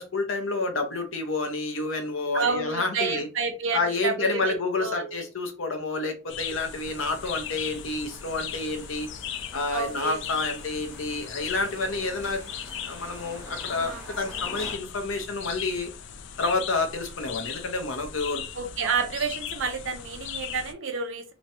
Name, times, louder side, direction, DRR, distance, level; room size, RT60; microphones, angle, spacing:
voice 1, 0.0-3.3 3.7-9.1 9.5-12.4 12.9-15.9 16.4-18.4 18.8-18.9, left 3 dB, 75° left, 5 dB, 0.7 m, -29 dB
voice 2, 2.3-5.3 9.7-10.2 13.7-14.0 18.6-21.2, right 5 dB, 70° right, 6 dB, 0.6 m, -30 dB
sound 1, 6.3-20.7, left 9 dB, 60° left, 0.3 m, -38 dB
sound 2, 6.7-14.8, right 1 dB, 15° right, 1.2 m, -46 dB
3.0 x 2.2 x 2.7 m, 0.30 s
head